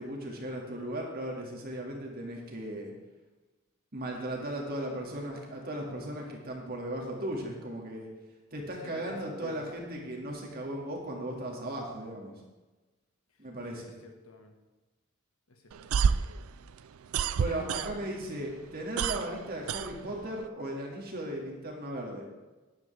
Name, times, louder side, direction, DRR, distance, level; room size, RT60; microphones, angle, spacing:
voice 1, 0.0-2.9 3.9-8.1 8.5-12.4 13.4-13.9 17.4-22.3, right 1 dB, 45° right, 0 dB, 2.3 m, -37 dB
voice 2, 8.8-9.7 13.7-14.5 15.5-16.1 17.4-18.1 19.1-19.2, left 2 dB, 85° left, 3 dB, 1.6 m, -49 dB
sound 1, 15.7-18.3 18.6-20.5, right 6 dB, 85° right, 0.4 m, -29 dB
12.5 x 10.5 x 3.5 m, 1.2 s
head